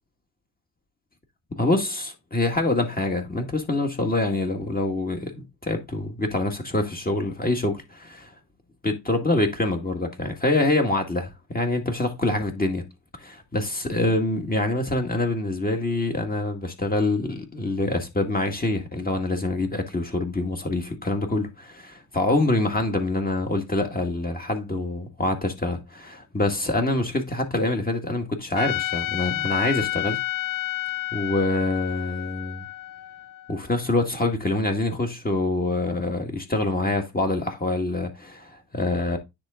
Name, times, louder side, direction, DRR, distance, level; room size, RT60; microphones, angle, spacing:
voice 1, 1.6-8.3 8.8-12.8 13.2-30.2 31.1-32.7 33.5-39.2, left 2 dB, 20° left, 1.9 m, -25 dB
Trumpet, 28.6-33.7, left 15 dB, 45° left, 0.5 m, -30 dB
9.7 x 3.9 x 3.8 m
cardioid pair, 90°, 45 cm